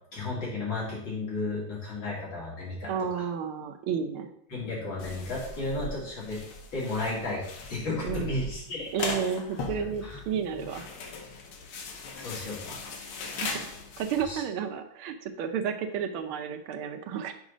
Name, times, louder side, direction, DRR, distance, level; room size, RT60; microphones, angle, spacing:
voice 1, 0.0-3.2 4.5-6.4 6.7-8.9 9.8-10.2 12.1-12.8 14.2-14.4, left 2 dB, 60° left, -6 dB, 3.4 m, -34 dB
voice 2, 2.9-4.3 8.0-8.4 8.9-10.9 13.3-13.7 14.0-17.3, right 7 dB, 80° right, 7 dB, 1.6 m, -32 dB
sound 1, 5.0-14.2, left 3 dB, 80° left, 1.8 m, -39 dB
6.3 x 5.0 x 5.0 m, 0.71 s
omnidirectional pair, 2.4 m